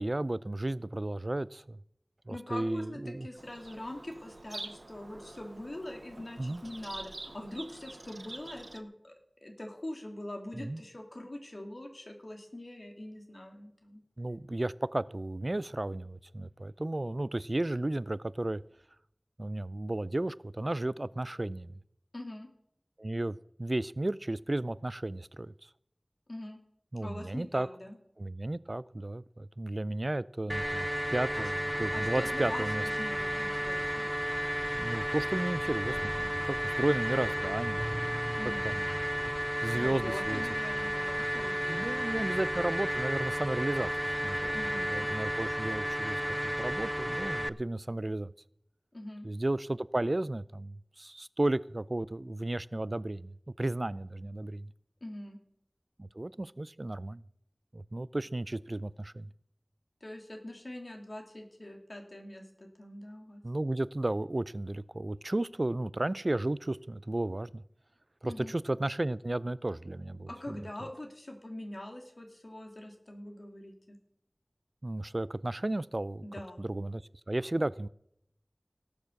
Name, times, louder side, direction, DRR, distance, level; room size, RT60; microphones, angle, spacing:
voice 1, 0.0-1.8 2.3-3.3 6.4-6.6 10.5-10.8 14.2-18.6 19.4-21.7 23.0-25.5 26.9-27.7 28.2-32.8 34.7-38.1 38.6-38.9 39.6-40.4 41.7-44.6 44.8-48.3 49.2-53.3 53.6-54.7 56.0-57.2 57.7-59.3 63.4-67.6 68.2-70.6 74.8-76.2 76.6-77.0 77.3-77.9, right 1 dB, 55° right, 0.4 m, -33 dB
voice 2, 2.3-9.1 9.4-14.0 22.1-22.5 26.3-26.6 27.0-28.0 31.4-31.5 31.9-34.1 38.4-38.7 39.7-42.3 44.5-45.1 48.9-49.3 55.0-55.4 60.0-63.4 68.3-68.5 70.3-74.0 76.2-76.6, left 1 dB, 70° left, 2.7 m, -43 dB
Bird vocalization bird call bird song, 3.4-8.8, right 2 dB, 85° right, 0.7 m, -47 dB
sound 1, 30.5-47.5, equal, ahead, 0.5 m, -33 dB
sound 2, 35.8-40.5 40.8-40.9, equal, 20° right, 1.7 m, -44 dB
18.0 x 7.2 x 6.5 m
wide cardioid pair, 40°, 0 cm